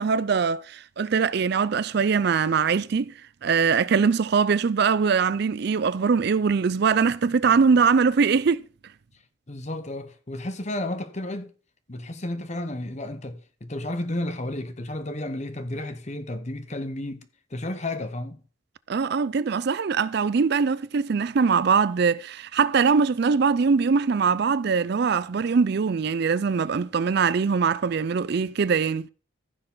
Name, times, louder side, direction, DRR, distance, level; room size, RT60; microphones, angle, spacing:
voice 1, 0.0-3.1 3.4-8.6 18.9-29.1, right 5 dB, 50° right, 0.4 m, -22 dB
voice 2, 9.5-11.5 11.9-17.2 17.5-18.4, left 1 dB, 35° left, 1.1 m, -32 dB
15.0 x 6.6 x 3.9 m
head